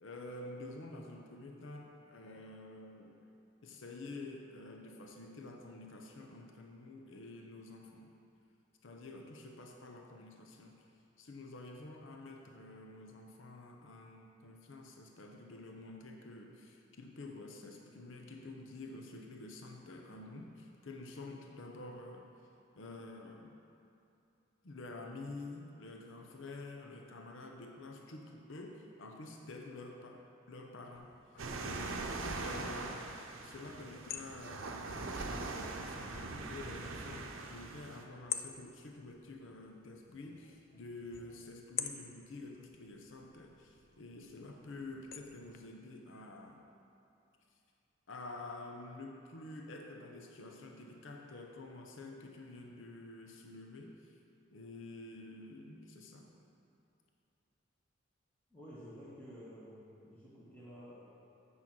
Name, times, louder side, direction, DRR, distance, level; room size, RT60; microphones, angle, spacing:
voice 1, 0.0-3.2 3.6-8.1 8.8-10.9 11.2-22.3 22.8-23.6 24.6-46.6 48.1-54.2 54.5-56.3, left 2 dB, 75° left, 2 dB, 0.7 m, -49 dB
sound 1, 31.0-45.6, left 9 dB, 45° left, 0.4 m, -49 dB
sound 2, 31.4-38.0, right 3 dB, 85° right, 0.7 m, -42 dB
voice 2, 58.5-61.0, equal, 10° left, -10 dB, 1.3 m, -51 dB
8.4 x 5.5 x 6.0 m, 2.7 s
head